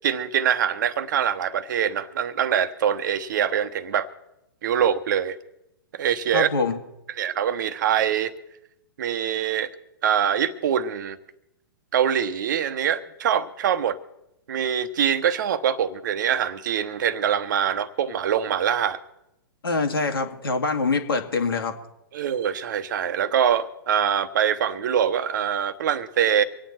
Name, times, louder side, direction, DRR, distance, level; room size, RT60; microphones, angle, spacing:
voice 1, 0.0-4.1 4.6-5.4 5.9-6.5 7.1-8.3 9.0-9.7 10.0-11.2 11.9-14.0 14.5-19.0 22.1-26.4, right 9 dB, 55° right, 1.1 m, -24 dB
voice 2, 6.3-6.8 19.6-21.7, left 4 dB, 80° left, 2.2 m, -24 dB
25.0 x 9.1 x 4.4 m
figure-of-eight pair, 120°, 12 cm